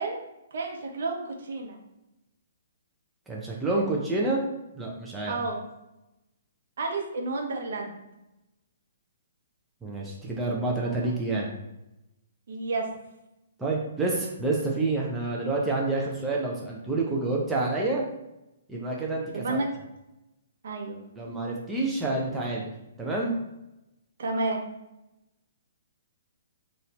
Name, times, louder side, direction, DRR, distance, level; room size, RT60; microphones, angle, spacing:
voice 1, 0.0-1.8 5.3-5.6 6.8-7.9 12.5-12.9 19.3-19.7 20.6-21.0 24.2-24.6, right 3 dB, 55° right, 1 dB, 1.0 m, -31 dB
voice 2, 3.3-4.4 4.7-5.3 9.8-11.5 13.6-18.0 18.7-19.6 21.2-22.7 23.0-23.3, right 2 dB, 5° right, -4 dB, 0.6 m, -28 dB
4.0 x 2.6 x 4.2 m, 0.92 s
figure-of-eight pair, 120°, 0 cm